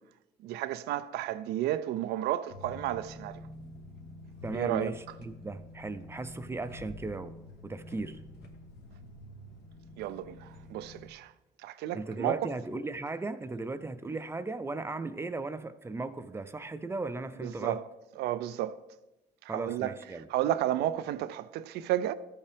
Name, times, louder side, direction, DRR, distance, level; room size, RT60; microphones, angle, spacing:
voice 1, 0.4-3.4 4.5-4.9 10.0-11.3 11.6-12.4 17.4-17.8 18.2-18.8 19.4-20.0 20.3-22.1, right 13 dB, 75° right, 0.4 m, -32 dB
sound 1, 2.5-11.1, left 1 dB, 75° left, 1.1 m, -48 dB
voice 2, 4.4-7.4 7.6-8.2 11.9-17.8 19.5-20.3, right 3 dB, 15° right, 0.5 m, -37 dB
13.0 x 5.5 x 3.4 m
cardioid pair, 110°, 17 cm